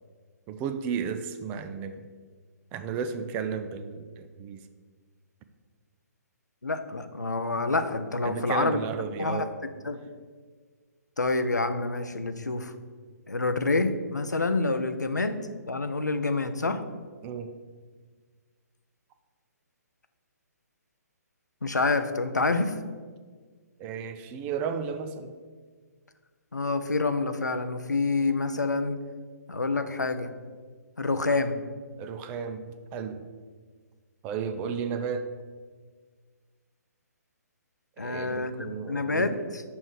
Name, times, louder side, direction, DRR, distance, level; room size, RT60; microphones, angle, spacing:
voice 1, 0.5-2.0 2.7-4.6 8.2-9.5 17.2-17.6 23.8-25.3 32.0-33.3 34.2-35.3 38.0-39.4, right 6 dB, 20° right, 9 dB, 0.4 m, -33 dB
voice 2, 6.6-8.8 9.2-9.5 9.8-10.0 11.2-12.7 13.3-15.4 15.7-16.8 21.6-22.7 26.5-29.0 29.5-30.3 31.0-31.6 38.0-39.6, left 3 dB, 85° left, 9 dB, 0.6 m, -27 dB
7.0 x 3.2 x 6.1 m, 1.6 s
figure-of-eight pair, 130°, 9 cm